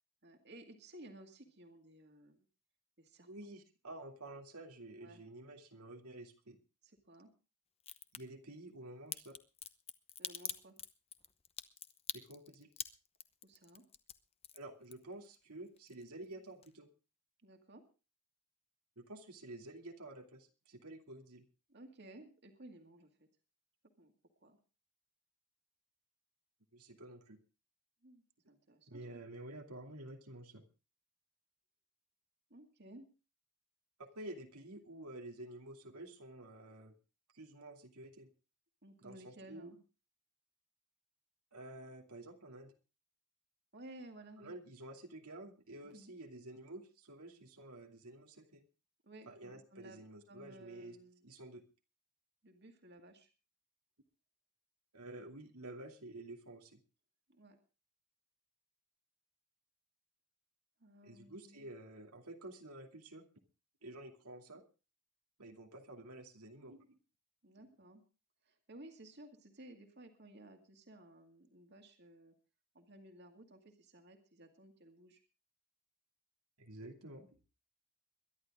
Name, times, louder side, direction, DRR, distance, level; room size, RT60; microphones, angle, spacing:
voice 1, 0.2-2.5 3.0-3.3 5.0-5.2 6.8-7.3 10.2-10.8 13.4-13.8 17.4-17.8 21.7-23.3 24.0-24.1 24.4-24.6 28.0-29.2 32.5-33.1 38.8-39.8 43.7-44.5 45.8-46.1 49.0-50.0 50.3-51.3 52.4-53.3 57.3-57.6 60.8-61.7 67.4-68.0 68.4-72.3 72.7-75.2, right 1 dB, 50° right, 4 dB, 2.3 m, -56 dB
voice 2, 3.2-6.6 8.1-9.4 12.1-12.7 14.5-16.9 19.0-21.5 26.7-27.4 28.9-30.6 34.0-36.9 37.3-38.3 39.0-39.7 41.5-42.7 44.4-48.6 49.3-51.0 51.2-51.6 54.9-56.8 61.0-63.2 63.8-64.6 65.4-67.0 76.6-77.4, right 1 dB, 90° right, 3 dB, 2.6 m, -50 dB
Crack, 7.8-8.2 9.1-15.4 15.7-16.3 16.6-16.7, left 9 dB, 25° left, 0.9 m, -44 dB
22.5 x 11.5 x 3.7 m, 0.33 s
head